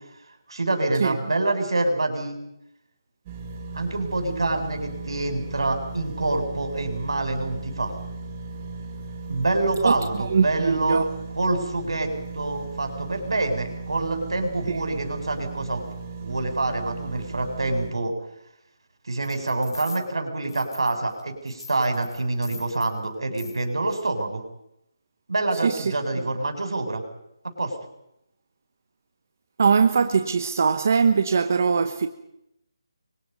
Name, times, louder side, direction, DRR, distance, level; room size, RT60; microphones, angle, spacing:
voice 1, 0.5-2.4 3.7-7.9 9.3-11.0 11.4-12.1 12.3-15.9 16.2-18.1 19.1-24.4 25.3-27.0 27.6-27.7, right 2 dB, 85° right, 7.4 m, -26 dB
sound 1, 3.3-17.9, right 3 dB, 15° right, 2.0 m, -37 dB
voice 2, 9.8-11.1 14.7-14.9 25.6-25.9 29.6-32.1, right 5 dB, 35° right, 1.2 m, -21 dB
sound 2, 19.2-20.0 20.5-21.2 21.5-22.9 23.3-23.6 23.9-24.1, left 3 dB, 85° left, 7.1 m, -42 dB
29.5 x 25.0 x 5.5 m
hypercardioid pair, 180°, 2 cm